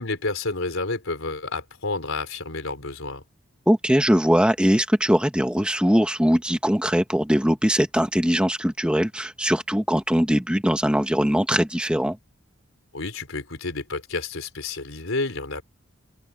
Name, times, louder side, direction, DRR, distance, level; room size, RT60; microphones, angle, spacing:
voice 1, 0.0-3.2 12.9-15.6, left 3 dB, 80° left, 3.7 m, -30 dB
voice 2, 3.7-12.2, equal, 5° right, 1.3 m, -21 dB
head